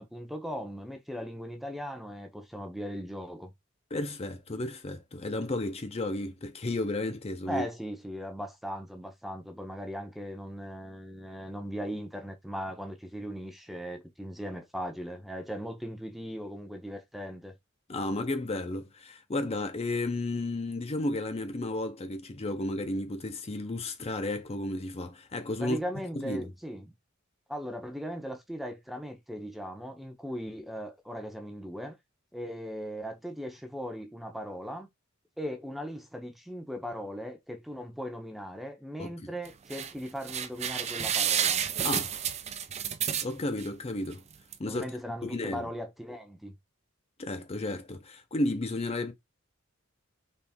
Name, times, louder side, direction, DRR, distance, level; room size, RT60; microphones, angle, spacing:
voice 1, 0.0-3.5 7.4-17.5 25.6-26.9 27.5-32.0 32.3-34.9 35.4-41.7 44.7-46.5, equal, ahead, 0.8 m, -38 dB
voice 2, 3.9-7.7 17.9-25.8 26.1-26.5 39.0-39.3 41.8-42.2 43.2-44.2 44.6-44.9 45.2-45.7 47.2-49.1, left 2 dB, 30° left, 0.6 m, -33 dB
sound 1, 39.4-39.9 40.3-43.7 44.1-44.2 44.5-44.6, right 9 dB, 30° right, 0.4 m, -30 dB
4.3 x 3.2 x 3.5 m
head